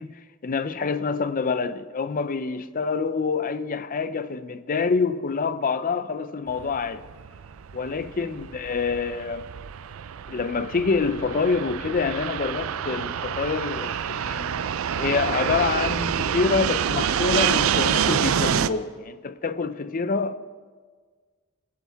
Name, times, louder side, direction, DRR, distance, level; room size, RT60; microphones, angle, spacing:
voice 1, 0.0-7.0 7.7-9.5 10.3-20.4, left 4 dB, 40° left, 0.5 m, -26 dB
Fixed-wing aircraft airplane, 6.5-18.7, right 8 dB, 75° right, 0.4 m, -27 dB
19.5 x 11.5 x 3.5 m
head